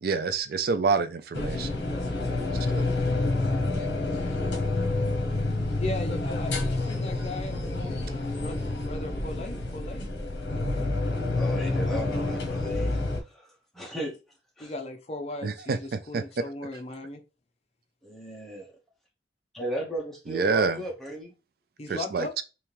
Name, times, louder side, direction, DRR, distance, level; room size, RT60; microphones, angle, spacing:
voice 1, 0.0-1.8 2.7-2.8 15.4-16.2 20.3-20.8 21.9-22.4, right 5 dB, 55° right, 0.3 m, -27 dB
sound 1, 1.3-13.2, left 2 dB, 70° left, 0.9 m, -28 dB
voice 2, 5.8-10.0 10.5-10.9 14.6-17.2 21.8-22.3, left 2 dB, 35° left, 0.7 m, -38 dB
voice 3, 11.3-14.2 14.6-14.7 18.0-18.7 19.5-21.3, right 1 dB, ahead, 1.0 m, -36 dB
3.4 x 2.9 x 3.0 m
head